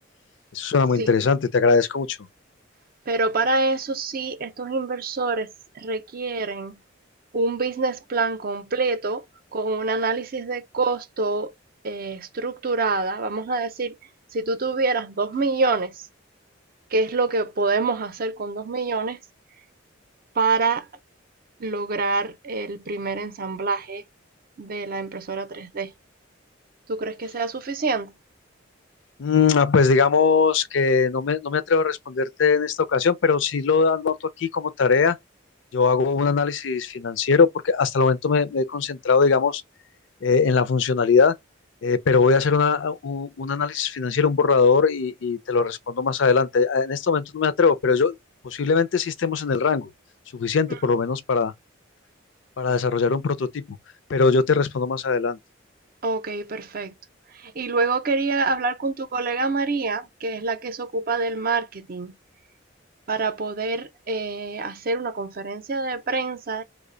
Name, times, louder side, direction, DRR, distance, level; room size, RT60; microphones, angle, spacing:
voice 1, 0.5-2.2 29.2-35.2 35.7-39.6 40.2-41.3 41.8-48.1 48.4-49.9 50.3-51.5 52.6-53.6 54.1-55.4, left 5 dB, 65° left, 0.4 m, -21 dB
voice 2, 3.1-6.8 7.3-9.2 9.5-11.5 11.8-14.0 14.3-16.0 16.9-19.2 20.3-20.9 21.6-24.0 24.6-25.9 26.9-28.1 50.7-50.8 56.0-56.9 57.3-62.1 63.1-66.6, right 3 dB, 45° right, 0.5 m, -26 dB
3.2 x 2.2 x 3.7 m
head